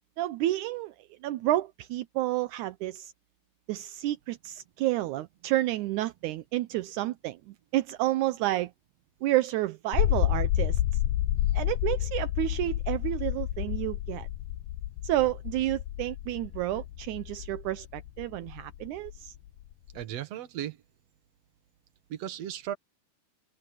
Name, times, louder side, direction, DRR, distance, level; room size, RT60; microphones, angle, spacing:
voice 1, 0.2-0.9 1.2-3.1 3.7-8.7 9.2-10.8 11.5-14.3 15.0-19.3, right 15 dB, 80° right, 1.8 m, -30 dB
distant explosion, 9.9-20.0, left 14 dB, 85° left, 1.7 m, -30 dB
voice 2, 19.9-20.8 22.1-22.8, right 11 dB, 55° right, 2.1 m, -36 dB
open air
omnidirectional pair, 4.2 m